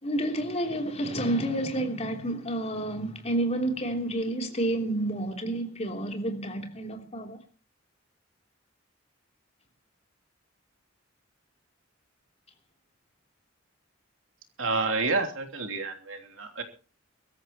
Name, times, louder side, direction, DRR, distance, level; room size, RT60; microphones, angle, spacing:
voice 1, 0.0-7.4, right 1 dB, 35° left, 3.3 m, -30 dB
voice 2, 14.6-16.6, right 3 dB, 80° right, 3.3 m, -29 dB
24.0 x 13.5 x 3.0 m
head